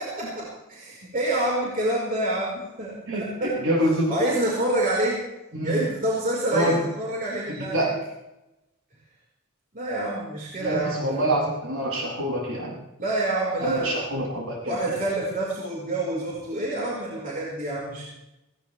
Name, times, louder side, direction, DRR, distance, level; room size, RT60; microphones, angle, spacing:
voice 1, 0.0-3.6 4.1-5.2 5.6-7.9 9.7-11.2 13.0-14.0 14.6-18.1, right 1 dB, 40° right, -5 dB, 4.9 m, -27 dB
voice 2, 3.1-4.1 5.5-5.9 6.5-6.8 7.5-8.0 10.6-12.8 13.6-15.1, right 1 dB, 70° right, -4 dB, 7.8 m, -26 dB
20.5 x 16.5 x 3.5 m, 0.92 s
head